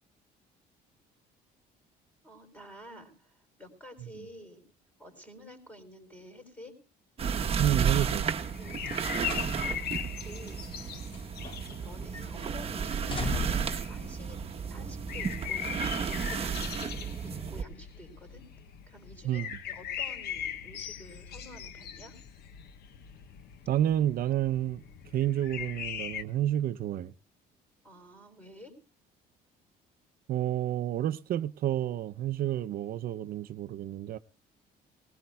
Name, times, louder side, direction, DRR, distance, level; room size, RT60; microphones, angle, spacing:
voice 1, 2.2-4.6 5.0-6.8 8.5-8.8 9.3-10.6 11.8-14.4 14.7-16.9 17.2-18.5 18.9-22.2 27.8-28.8, equal, 10° left, 4.1 m, -50 dB
sound 1, 7.2-17.6, right 6 dB, 35° right, 1.0 m, -33 dB
voice 2, 7.6-8.3 19.2-19.5 23.7-24.8 25.1-27.1 30.3-34.2, right 12 dB, 60° right, 0.6 m, -30 dB
sound 2, 8.4-26.2, left 9 dB, 70° left, 1.1 m, -40 dB
sound 3, 8.8-9.6 9.9-10.1 10.8-11.9 12.1-12.5 12.9-13.8 14.7-14.8, left 2 dB, 30° left, 2.2 m, -37 dB
19.5 x 18.5 x 2.3 m
cardioid pair, 110°, 17 cm